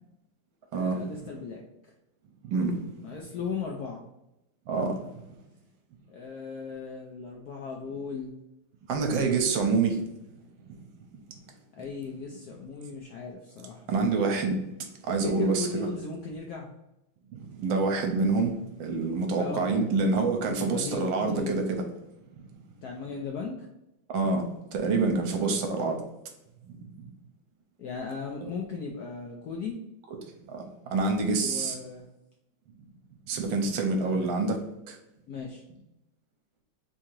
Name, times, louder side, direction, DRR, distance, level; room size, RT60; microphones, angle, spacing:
voice 1, 0.8-1.6 3.0-4.1 6.1-8.3 11.7-14.0 15.1-16.7 19.4-20.1 20.4-21.6 22.8-23.7 25.3-25.6 27.8-29.8 31.4-32.1 33.9-34.3 35.3-35.6, left 5 dB, 75° left, 0 dB, 0.9 m, -37 dB
voice 2, 2.4-3.1 4.7-5.0 8.9-10.0 10.7-10.8 13.9-14.6 15.1-15.9 17.3-18.5 18.8-21.8 24.1-26.0 27.0-27.1 28.4-28.5 30.5-31.8 33.3-34.6 34.9-35.0, right 4 dB, 75° right, 4 dB, 1.4 m, -27 dB
3.7 x 2.8 x 4.5 m, 0.88 s
omnidirectional pair, 2.2 m